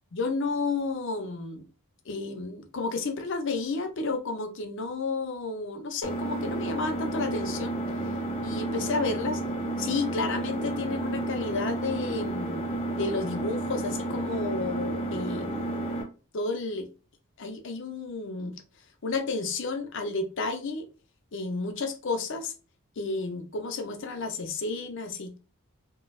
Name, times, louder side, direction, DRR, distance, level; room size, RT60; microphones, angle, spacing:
voice 1, 0.1-1.6 2.1-7.7 8.4-9.4 9.8-15.8 16.3-16.9 17.4-18.6 19.0-20.9 21.3-22.5 23.0-25.4, left 3 dB, 55° left, 0.6 m, -31 dB
Engine, 6.0-16.0, right 2 dB, 25° left, 0.8 m, -31 dB
4.0 x 2.2 x 2.3 m
head